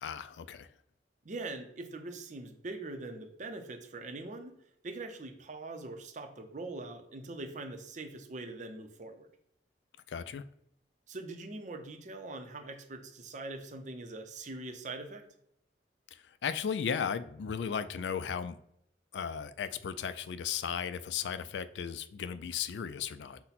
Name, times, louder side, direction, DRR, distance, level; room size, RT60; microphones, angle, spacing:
voice 1, 0.0-0.7 10.1-10.4 16.4-18.6 19.1-23.4, left 7 dB, 70° left, 0.3 m, -35 dB
voice 2, 1.2-4.5 4.8-9.3 11.1-15.2, right 2 dB, 40° right, 0.6 m, -42 dB
5.7 x 2.1 x 4.0 m
head